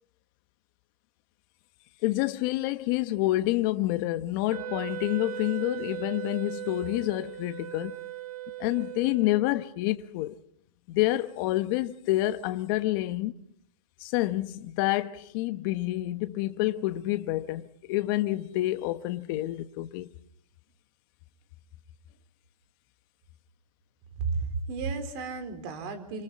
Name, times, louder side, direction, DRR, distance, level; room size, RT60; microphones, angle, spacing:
voice 1, 2.0-7.9 8.6-10.4 10.9-13.3 14.0-20.1, left 17 dB, 35° left, 1.2 m, -28 dB
Wind instrument woodwind instrument, 4.5-9.7, right 13 dB, 85° right, 1.9 m, -38 dB
voice 2, 24.2-26.2, right 4 dB, 40° right, 4.4 m, -33 dB
28.0 x 26.5 x 4.2 m
hypercardioid pair, 145°, 19 cm